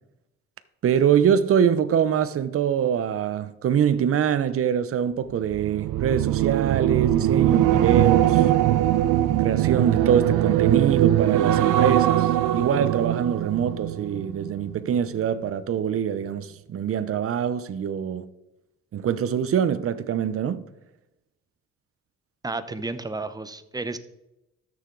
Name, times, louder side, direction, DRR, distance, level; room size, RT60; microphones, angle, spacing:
voice 1, 0.8-8.5 9.4-18.3 18.9-20.6, right 8 dB, 50° right, 0.7 m, -24 dB
sound 1, 5.4-14.8 15.2-15.5, right 13 dB, 90° right, 0.6 m, -21 dB
voice 2, 22.4-24.0, right 3 dB, 15° right, 0.8 m, -32 dB
12.5 x 6.7 x 3.9 m
cardioid pair, 90°, 30 cm